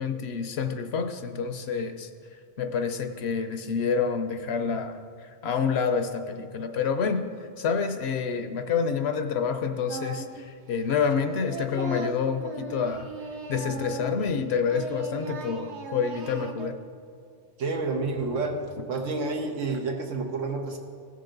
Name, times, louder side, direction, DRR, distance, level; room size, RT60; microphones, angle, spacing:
voice 1, 0.0-2.1 2.6-5.0 5.4-7.3 7.6-13.1 13.5-16.8, left 6 dB, 65° left, 7 dB, 0.9 m, -28 dB
Singing, 9.9-10.5 10.7-14.4 14.6-16.7, right 3 dB, 65° right, 1.0 m, -37 dB
voice 2, 17.6-18.6 18.9-20.8, right 3 dB, 90° right, 3 dB, 1.5 m, -29 dB
16.5 x 6.7 x 3.9 m, 2.2 s
omnidirectional pair, 1.3 m